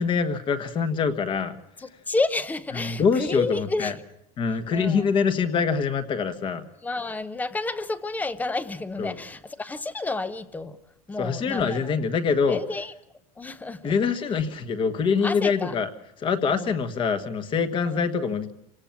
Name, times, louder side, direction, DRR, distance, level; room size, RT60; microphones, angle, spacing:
voice 1, 0.0-1.6 2.7-3.9 4.4-6.6 9.0-9.2 11.2-12.6 13.8-15.9 16.2-18.5, left 5 dB, 25° left, 1.4 m, -24 dB
voice 2, 1.8-3.9 4.7-5.0 6.8-10.8 11.1-11.9 12.5-12.9 13.4-13.9 15.2-15.7 16.5-16.8 17.9-18.0, left 3 dB, 10° left, 0.7 m, -30 dB
27.0 x 18.0 x 5.8 m
supercardioid pair, 160°, 20 cm